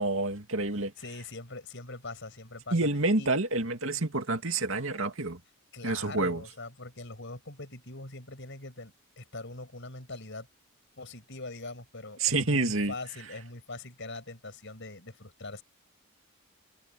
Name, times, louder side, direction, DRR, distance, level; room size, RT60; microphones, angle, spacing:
voice 1, 0.0-0.9 2.7-5.4 5.8-6.4 12.2-12.9, right 2 dB, 60° right, 2.5 m, -28 dB
voice 2, 0.8-2.9 3.2-3.3 5.7-10.5 11.0-15.6, left 2 dB, 55° left, 6.5 m, -42 dB
head